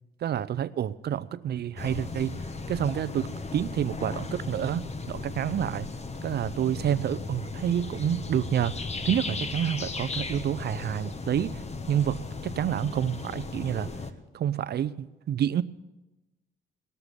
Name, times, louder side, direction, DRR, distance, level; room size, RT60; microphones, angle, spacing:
voice 1, 0.2-2.4 2.7-5.9 6.2-13.9 14.3-15.6, right 10 dB, 55° right, 16 dB, 0.6 m, -29 dB
sound 1, 1.7-14.1, left 3 dB, 35° left, 1.2 m, -36 dB
19.0 x 6.8 x 9.9 m, 1.0 s
cardioid pair, 90°, 20 cm